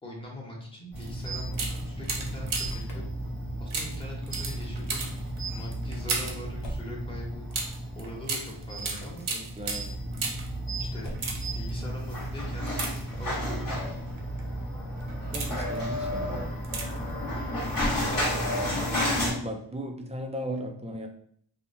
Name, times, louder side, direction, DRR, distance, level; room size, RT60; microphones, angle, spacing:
voice 1, 0.0-3.1 3.6-5.1 5.4-9.3 10.8-11.1 11.5-12.9 13.2-14.0 17.6-18.4, left 1 dB, 10° left, -3 dB, 0.9 m, -43 dB
sound 1, 0.9-19.3, equal, 45° left, 1.2 m, -33 dB
sound 2, 1.0-1.1 1.5-2.9 3.7-6.5 7.5-10.6 11.1-11.7 12.7-13.5 14.2-14.4 15.0-15.8 16.6-17.1 17.4-17.5, right 4 dB, 80° right, 0.7 m, -35 dB
Motor vehicle (road), 2.5-3.0 6.6-7.0 8.9-9.3 11.0-11.5 13.1-13.4 17.7-18.5, equal, 65° left, 0.7 m, -39 dB
voice 2, 9.3-9.9 15.3-16.5 19.3-21.1, equal, 15° right, 4 dB, 0.3 m, -36 dB
2.9 x 2.1 x 2.5 m, 0.63 s
wide cardioid pair, 55°, 48 cm